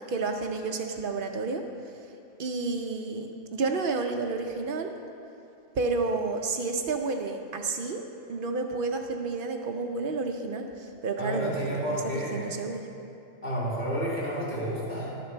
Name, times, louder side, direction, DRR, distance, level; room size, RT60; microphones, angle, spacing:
voice 1, 0.1-1.6 2.4-4.9 5.7-8.0 8.3-11.8 12.3-12.8, right 3 dB, 60° right, 4 dB, 0.6 m, -30 dB
voice 2, 11.2-12.6 13.4-15.2, equal, 35° left, -7 dB, 2.1 m, -31 dB
11.0 x 7.0 x 4.4 m, 2.7 s
omnidirectional pair, 1.4 m